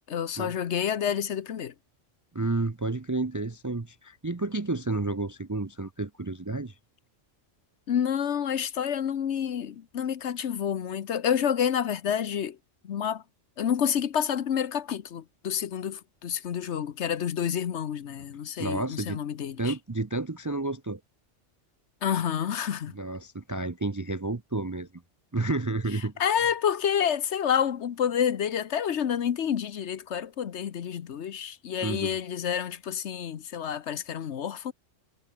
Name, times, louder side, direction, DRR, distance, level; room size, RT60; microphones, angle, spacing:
voice 1, 0.1-1.7 7.9-12.6 12.8-13.2 13.6-19.7 22.0-23.0 26.2-34.7, left 8 dB, 65° left, 1.2 m, -29 dB
voice 2, 2.3-6.7 18.6-19.2 19.6-21.0 22.9-24.9 25.3-26.5 31.8-32.2, right 2 dB, 25° right, 0.4 m, -31 dB
omnidirectional pair, 1.3 m